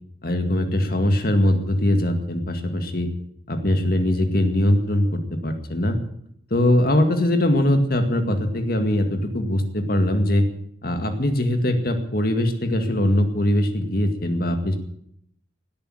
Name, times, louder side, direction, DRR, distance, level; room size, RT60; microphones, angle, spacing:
voice 1, 0.2-3.1 3.5-6.0 6.5-10.4 10.8-14.8, left 1 dB, 55° left, 6 dB, 2.1 m, -21 dB
17.5 x 8.7 x 8.9 m, 0.72 s
head